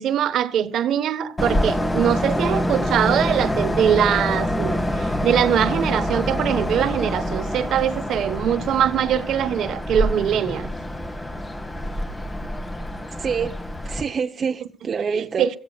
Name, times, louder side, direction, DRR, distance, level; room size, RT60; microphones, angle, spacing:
voice 1, 0.0-10.7 15.1-15.5, right 9 dB, 75° right, 1.2 m, -22 dB
Train, 1.4-14.0, left 1 dB, 20° left, 1.9 m, -26 dB
voice 2, 13.1-15.5, right 6 dB, 45° right, 0.9 m, -27 dB
23.5 x 16.0 x 2.4 m
cardioid pair, 90°, 0 cm